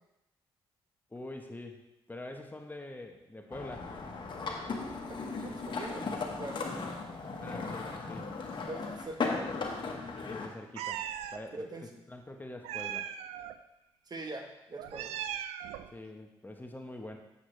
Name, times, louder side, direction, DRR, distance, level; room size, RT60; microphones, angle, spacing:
voice 1, 1.1-3.9 7.4-8.3 10.2-11.7 12.1-13.1 15.9-17.2, left 1 dB, 15° left, 4 dB, 1.0 m, -45 dB
sound 1, 3.5-10.5, left 4 dB, 50° left, 1.4 m, -37 dB
voice 2, 5.2-6.8 8.6-9.5 11.5-11.8 14.1-15.2, right 2 dB, 40° right, 4 dB, 1.2 m, -43 dB
Meow, 10.8-11.4 12.6-13.5 14.8-15.9, right 10 dB, 85° right, 0.4 m, -38 dB
8.3 x 6.7 x 3.2 m, 0.93 s
supercardioid pair, 60°, 10 cm